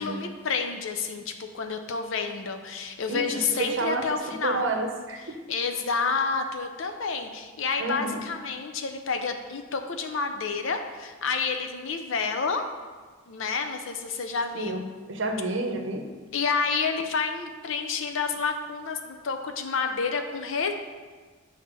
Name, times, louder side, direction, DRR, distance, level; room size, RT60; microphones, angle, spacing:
voice 1, 0.0-4.7 5.5-12.6 13.3-14.8 16.3-20.7, left 5 dB, 75° left, 6 dB, 0.6 m, -29 dB
voice 2, 3.1-4.1 4.4-5.4 7.8-8.2 14.5-16.1, right 2 dB, 65° right, 4 dB, 0.7 m, -30 dB
7.8 x 2.8 x 6.1 m, 1.5 s
head